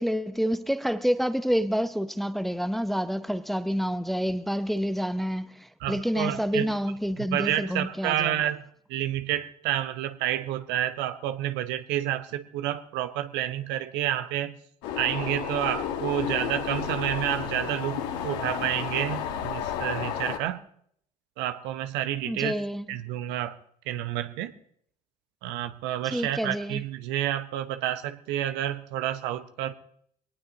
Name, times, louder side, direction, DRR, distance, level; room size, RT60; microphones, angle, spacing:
voice 1, 0.0-5.5 5.9-8.4 22.3-22.8 26.1-26.8, equal, ahead, 0.8 m, -28 dB
voice 2, 5.8-6.8 7.2-8.6 8.9-14.6 15.0-20.6 21.4-22.5 22.9-23.6 23.9-24.5 25.4-29.7, right 12 dB, 60° right, 1.0 m, -29 dB
sound 1, 14.8-20.4, left 8 dB, 65° left, 1.7 m, -32 dB
23.5 x 19.0 x 3.0 m
figure-of-eight pair, 60°, 20 cm